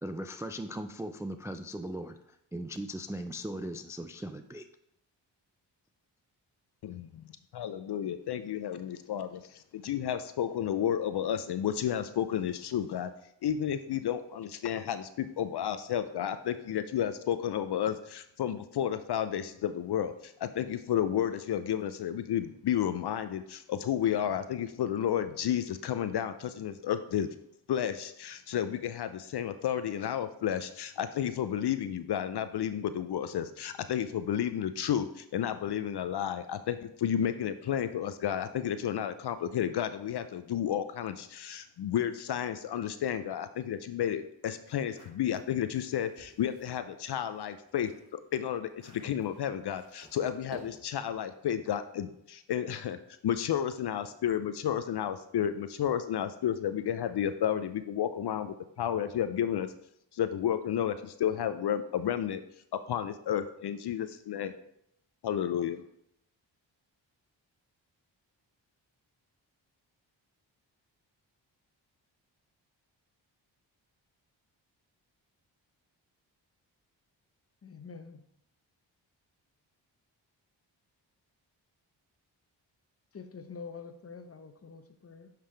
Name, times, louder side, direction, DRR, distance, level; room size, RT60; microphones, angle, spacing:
voice 1, 0.0-4.7, equal, 5° right, 8 dB, 0.3 m, -39 dB
voice 2, 6.8-7.3 7.5-13.1 13.4-27.3 27.7-53.0 53.2-59.7 60.1-62.4 62.9-64.5 65.2-65.8, left 9 dB, 55° left, 11 dB, 0.5 m, -32 dB
sound 1, 44.6-46.8 47.3-51.1, equal, 50° right, 2.2 m, -54 dB
voice 3, 77.6-78.3 83.1-85.3, left 5 dB, 30° left, 9 dB, 0.8 m, -46 dB
9.0 x 3.4 x 3.3 m, 0.76 s
supercardioid pair, 40°, 48 cm